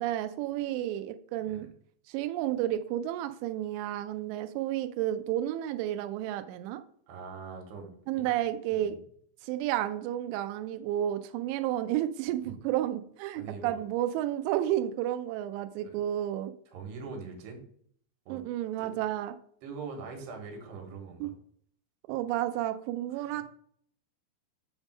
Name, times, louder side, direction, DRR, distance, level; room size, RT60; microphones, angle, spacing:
voice 1, 0.0-1.7 2.1-6.8 8.1-9.0 9.4-16.5 18.3-19.3 21.2-21.3 22.1-23.4, right 12 dB, 90° right, 9 dB, 2.4 m, -31 dB
voice 2, 7.1-8.3 8.7-9.0 13.4-13.8 15.8-16.0 16.7-17.6 18.3-18.4 18.8-18.9 19.6-21.3 23.1-23.4, right 4 dB, 70° right, 3 dB, 3.4 m, -43 dB
7.3 x 3.5 x 6.2 m, 0.62 s
omnidirectional pair, 5.5 m